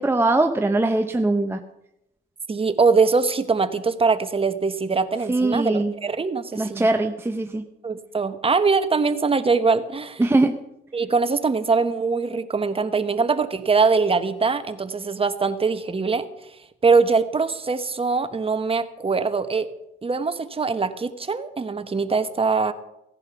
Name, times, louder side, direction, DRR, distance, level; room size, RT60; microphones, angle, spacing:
voice 1, 0.0-1.6 5.3-5.9 6.6-7.6 10.2-10.6, right 2 dB, 10° right, 6 dB, 0.8 m, -21 dB
voice 2, 2.5-6.9 7.8-10.2 10.9-16.2 16.8-19.7 20.0-22.7, right 4 dB, 30° right, 9 dB, 1.2 m, -22 dB
17.0 x 10.5 x 5.9 m, 0.85 s
cardioid pair, 90°, 20 cm